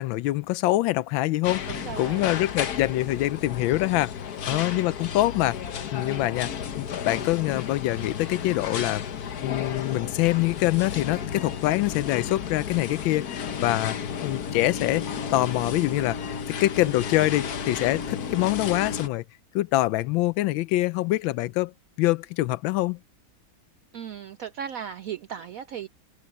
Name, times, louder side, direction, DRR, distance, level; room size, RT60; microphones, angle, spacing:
voice 1, 0.0-4.1 4.5-5.6 5.9-6.5 6.8-9.0 9.4-16.2 16.6-19.2 19.5-21.7 22.0-23.0, left 17 dB, 85° left, 1.3 m, -25 dB
sound 1, 1.4-19.1, left 7 dB, 55° left, 1.5 m, -33 dB
voice 2, 1.7-2.3 4.4-4.9 6.0-6.3 23.9-25.9, right 9 dB, 75° right, 0.8 m, -37 dB
omnidirectional pair, 2.1 m